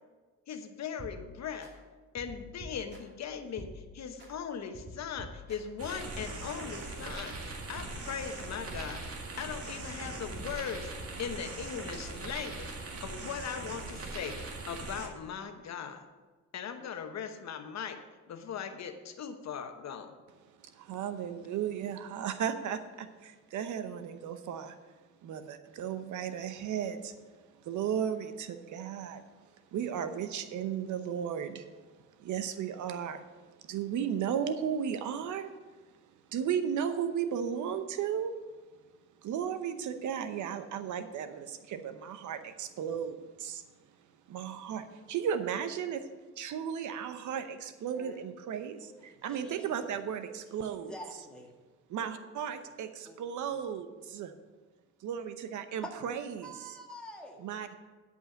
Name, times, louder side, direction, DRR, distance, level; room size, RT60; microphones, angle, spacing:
voice 1, 0.5-1.7 2.1-16.1 16.5-18.0 18.3-20.1, left 7 dB, 65° left, 7 dB, 1.0 m, -39 dB
sound 1, 1.0-1.7 2.2-3.2 3.6-4.3 4.7-6.9 7.3-8.4 8.7-9.5 9.9-11.3, equal, 35° right, 2.9 m, -48 dB
sound 2, 5.8-15.1, right 3 dB, 50° right, 2.0 m, -41 dB
voice 2, 20.7-24.8 25.2-27.1 27.6-29.2 29.7-31.7 32.2-33.3 33.6-35.5 36.3-38.3 39.2-43.6 44.3-46.0 46.4-51.0 51.9-54.3 55.0-56.8 57.4-57.7, right 8 dB, 75° right, 10 dB, 0.9 m, -35 dB
voice 3, 48.8-49.9 50.9-51.5 53.1-53.2 53.5-53.6 55.8-55.9 56.4-57.4, equal, 5° left, -1 dB, 2.1 m, -47 dB
11.5 x 5.5 x 6.4 m, 1.3 s
cardioid pair, 90°, 30 cm